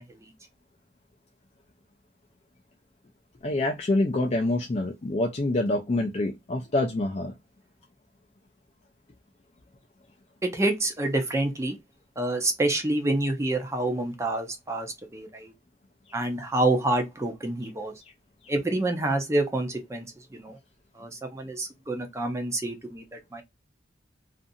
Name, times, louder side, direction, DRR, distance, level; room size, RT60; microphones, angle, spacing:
voice 1, 3.4-7.3, left 2 dB, 35° left, 0.4 m, -26 dB
voice 2, 10.4-11.8 12.2-15.5 16.1-17.9 18.5-20.1 20.3-20.6 21.0-23.4, right 2 dB, 15° right, 0.5 m, -27 dB
2.5 x 2.4 x 2.6 m
head